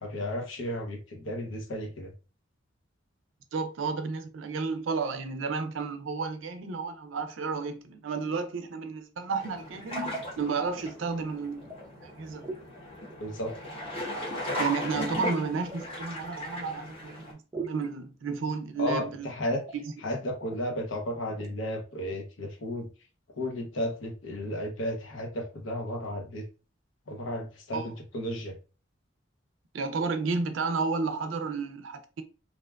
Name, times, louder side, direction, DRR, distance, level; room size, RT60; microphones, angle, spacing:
voice 1, 0.0-2.1 13.2-13.6 18.8-19.6 20.0-22.9 23.4-26.5 27.1-28.6, left 1 dB, 85° left, 0.7 m, -33 dB
voice 2, 3.5-11.7 12.0-12.4 14.6-19.3 19.7-19.9 27.7-27.9 29.7-32.2, right 4 dB, 85° right, 0.4 m, -32 dB
sound 1, 9.4-17.3, equal, 30° left, 0.8 m, -37 dB
sound 2, 11.7-12.2 12.4-12.6 13.0-14.2 14.8-15.9 17.5-17.9 18.9-19.3 19.6-19.8 20.1-20.2 20.4-20.6 21.3-21.5, right 4 dB, 20° right, 0.4 m, -42 dB
2.5 x 2.2 x 2.2 m
head